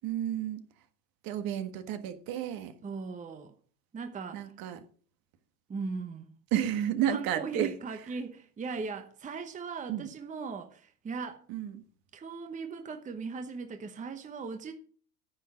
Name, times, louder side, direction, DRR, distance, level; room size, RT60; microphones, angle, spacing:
voice 1, 0.0-0.6 1.2-2.7 4.3-4.8 6.5-7.7 9.9-10.1 11.5-11.8, right 10 dB, 45° right, 1.5 m, -32 dB
voice 2, 2.8-3.5 3.9-4.5 5.7-6.3 7.1-11.4 12.1-14.7, right 4 dB, 15° right, 1.0 m, -38 dB
9.8 x 5.6 x 7.2 m
hypercardioid pair, 105°, 47 cm